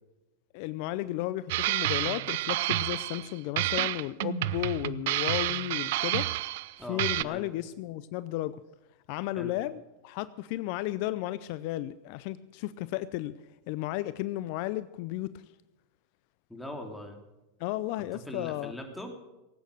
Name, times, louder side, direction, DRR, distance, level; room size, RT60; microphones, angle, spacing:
voice 1, 0.5-6.3 6.9-8.5 9.1-13.3 13.7-15.3 17.6-18.7, left 16 dB, 60° left, 16 dB, 0.5 m, -34 dB
sound 1, 1.5-3.3 3.6-6.7 7.0-7.2, right 17 dB, 65° right, 0.5 m, -29 dB
voice 2, 6.8-7.5 9.4-9.5 16.5-17.2 18.1-19.2, left 1 dB, 5° left, 3 dB, 3.2 m, -41 dB
18.0 x 9.0 x 6.8 m, 1.1 s
hypercardioid pair, 105°, 0 cm